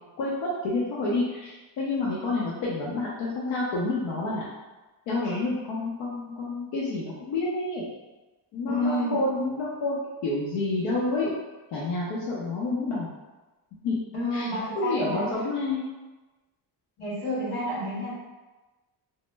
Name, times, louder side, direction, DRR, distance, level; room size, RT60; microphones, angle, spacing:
voice 1, 0.2-4.4 5.1-7.9 8.5-10.0 10.2-11.3 11.7-13.1 13.8-14.0 14.3-14.5 14.7-15.9, left 2 dB, 85° left, -6 dB, 0.7 m, -29 dB
voice 2, 8.7-9.1 14.1-15.3 17.0-18.1, left 1 dB, 60° left, -6 dB, 1.4 m, -29 dB
3.0 x 2.1 x 3.2 m, 1.2 s
cardioid pair, 160°, 44 cm